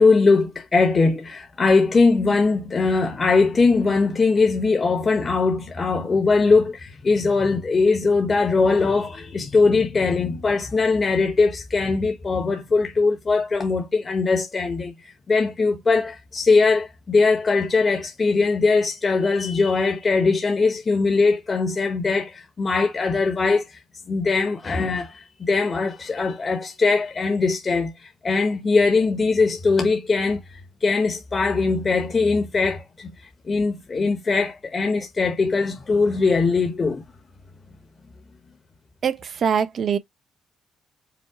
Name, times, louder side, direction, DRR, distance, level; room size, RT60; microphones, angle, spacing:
voice 1, 0.0-23.8 24.1-30.4 30.8-33.1 33.5-37.0, left 4 dB, 35° left, 1.0 m, -21 dB
voice 2, 39.0-40.0, right 7 dB, 55° right, 0.8 m, -23 dB
5.1 x 2.2 x 4.7 m
cardioid pair, 90°, 0 cm